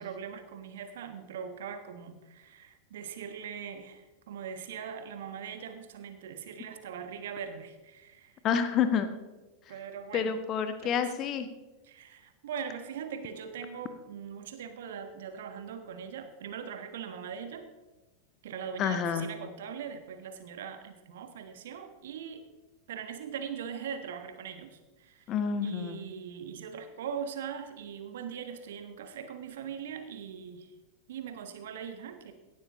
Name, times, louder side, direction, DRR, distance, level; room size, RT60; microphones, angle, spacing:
voice 1, 0.0-8.4 9.7-10.4 10.8-10.9 11.8-17.6 18.4-22.5 22.9-25.3 25.6-30.7 31.1-32.3, right 7 dB, 60° right, 8 dB, 1.3 m, -41 dB
voice 2, 8.4-9.1 10.1-11.5 18.8-19.3 25.3-26.0, left 7 dB, 35° left, 10 dB, 1.2 m, -28 dB
17.5 x 11.5 x 3.0 m, 1.2 s
figure-of-eight pair, 90°, 0 cm